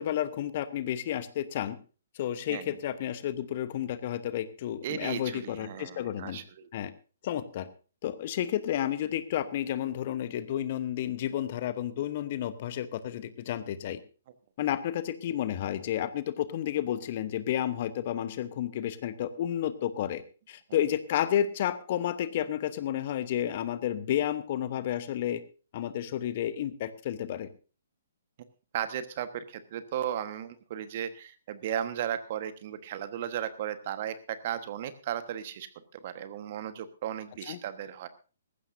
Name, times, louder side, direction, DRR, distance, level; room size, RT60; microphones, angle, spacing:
voice 1, 0.0-1.8 2.1-6.4 6.7-6.9 7.2-7.7 8.0-14.0 14.6-20.2 20.5-25.4 25.7-27.5 37.5-37.6, left 11 dB, 40° left, 14 dB, 1.0 m, -31 dB
voice 2, 4.8-6.7 28.7-35.7 35.9-38.1, right 10 dB, 45° right, 11 dB, 1.3 m, -35 dB
19.0 x 15.0 x 2.7 m, 0.35 s
figure-of-eight pair, 125°, 0 cm